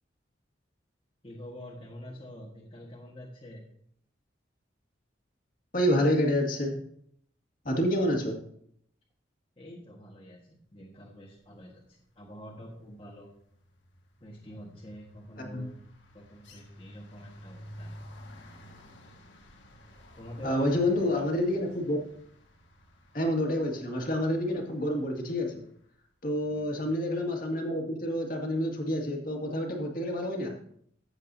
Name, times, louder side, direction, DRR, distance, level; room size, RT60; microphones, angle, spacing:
voice 1, 1.2-3.6 9.6-13.3 14.2-15.8 16.1-17.9 20.1-20.8 21.1-21.2 26.4-26.9, equal, 30° left, -4 dB, 1.5 m, -46 dB
voice 2, 5.7-6.8 7.6-8.4 15.5-15.6 20.4-22.0 23.1-25.6 26.2-30.6, left 1 dB, 45° left, 1 dB, 2.0 m, -28 dB
sound 1, 11.8-12.1 12.4-25.6, equal, 80° left, 1.7 m, -52 dB
14.5 x 7.9 x 2.7 m, 0.67 s
head